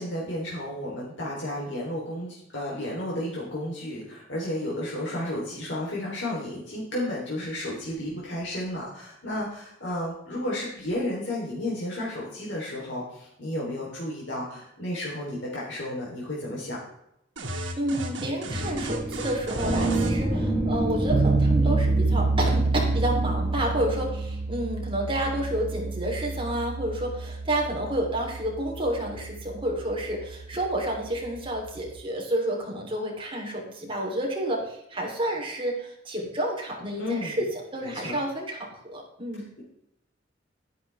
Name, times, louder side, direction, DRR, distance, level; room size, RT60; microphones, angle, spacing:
voice 1, 0.0-16.8 37.0-37.4 37.8-38.2, left 1 dB, 70° left, -5 dB, 3.5 m, -32 dB
sound 1, 17.4-20.2, right 1 dB, 85° right, 1.9 m, -33 dB
voice 2, 17.5-39.5, right 1 dB, 30° right, 0 dB, 3.3 m, -30 dB
sound 2, 18.5-24.5, right 1 dB, 10° left, 4.4 m, -29 dB
sound 3, 21.1-32.0, right 3 dB, 50° right, 0.5 m, -28 dB
12.5 x 10.5 x 3.4 m, 0.77 s
head